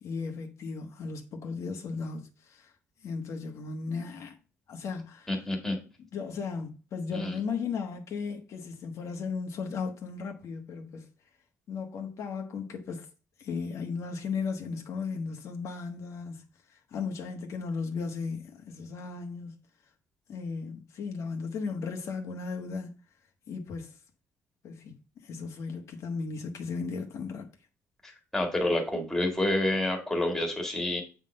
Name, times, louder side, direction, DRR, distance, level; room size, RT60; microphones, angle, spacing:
voice 1, 0.0-2.7 3.0-4.4 4.7-5.4 6.1-11.1 11.7-13.1 13.4-16.4 16.7-19.5 20.3-22.9 23.5-24.0 24.6-25.0 25.2-27.5, left 5 dB, 55° left, 1.3 m, -36 dB
voice 2, 5.3-5.8 7.1-7.3 28.0-31.0, left 1 dB, 5° left, 2.0 m, -28 dB
8.3 x 3.8 x 5.2 m
cardioid pair, 160°, 6 cm